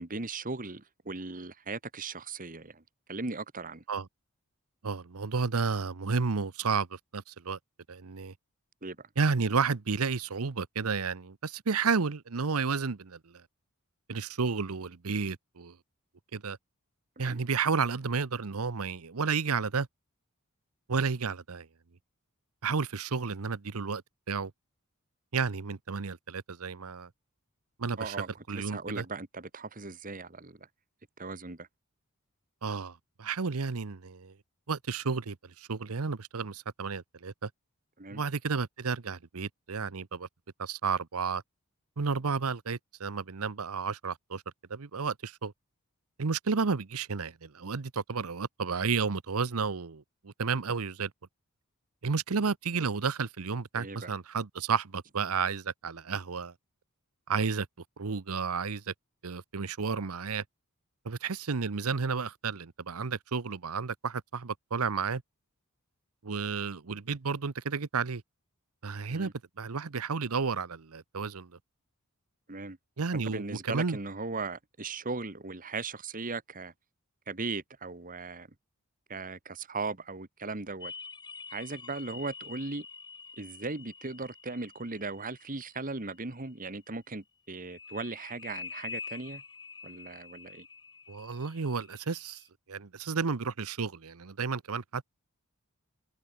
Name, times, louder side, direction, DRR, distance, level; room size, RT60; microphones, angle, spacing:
voice 1, 0.0-2.8 3.1-3.8 8.8-9.0 17.2-17.4 28.0-30.6 31.2-31.7 38.0-38.2 53.7-54.1 69.1-69.3 72.5-72.8 73.3-76.7 77.3-78.5 79.1-80.9 81.5-82.8 83.4-89.4 89.8-90.7, right 3 dB, 35° right, 1.6 m, -38 dB
voice 2, 4.8-7.6 7.9-8.3 9.2-13.2 14.1-15.7 16.3-16.6 17.2-19.9 20.9-21.7 22.6-24.0 24.3-24.5 25.3-27.1 27.8-28.2 28.5-29.0 32.6-34.3 34.7-37.5 38.1-40.3 40.6-41.4 42.0-44.4 44.7-45.5 46.2-51.1 52.0-56.5 57.3-57.7 58.0-58.9 59.2-60.4 61.0-65.2 66.2-68.2 68.8-69.3 69.6-71.5 73.0-74.0 91.1-92.4 92.7-95.0, right 5 dB, 75° right, 0.8 m, -32 dB
sound 1, 80.8-86.3 87.7-92.4, left 5 dB, 20° left, 1.5 m, -46 dB
head